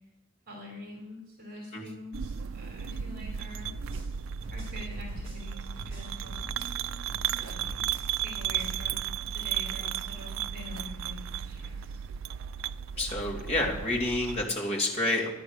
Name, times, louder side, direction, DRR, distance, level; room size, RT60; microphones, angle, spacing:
voice 1, 0.5-3.7 4.5-6.4 7.4-7.8 8.2-12.0, left 1 dB, 40° right, 0 dB, 3.1 m, -45 dB
sound 1, 2.1-14.5, right 9 dB, 60° right, 0.4 m, -35 dB
sound 2, 3.6-6.8 7.1-8.9, left 1 dB, 25° right, 4.2 m, -45 dB
voice 2, 13.0-15.3, left 2 dB, 30° left, -2 dB, 2.6 m, -29 dB
12.0 x 10.0 x 6.6 m, 0.87 s
head